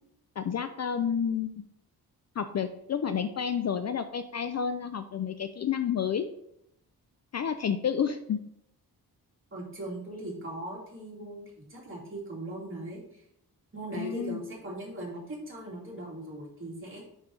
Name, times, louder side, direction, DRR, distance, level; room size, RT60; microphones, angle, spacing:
voice 1, 0.4-1.5 2.4-6.3 7.3-8.4 14.0-14.4, left 7 dB, 45° left, 10 dB, 0.4 m, -30 dB
voice 2, 9.5-11.4 11.7-13.2 13.7-17.0, right 1 dB, 30° right, -3 dB, 2.5 m, -39 dB
5.5 x 5.1 x 4.5 m, 0.75 s
wide cardioid pair, 105°, 38 cm